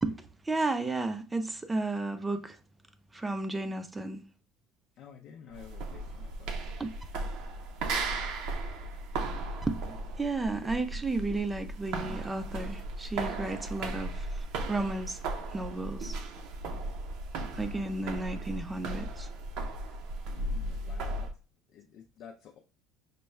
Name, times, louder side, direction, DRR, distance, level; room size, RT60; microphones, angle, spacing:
voice 1, 0.4-2.6 3.1-4.2 6.8-6.9 9.7-15.2 15.5-16.2 17.5-19.3, right 2 dB, 15° right, 0.4 m, -33 dB
voice 2, 5.0-6.5 20.3-21.3 21.7-22.6, left 7 dB, 55° left, 0.5 m, -50 dB
sound 1, 5.5-21.3, right 2 dB, 70° right, 0.6 m, -36 dB
5.2 x 2.2 x 3.2 m
supercardioid pair, 115°, 0 cm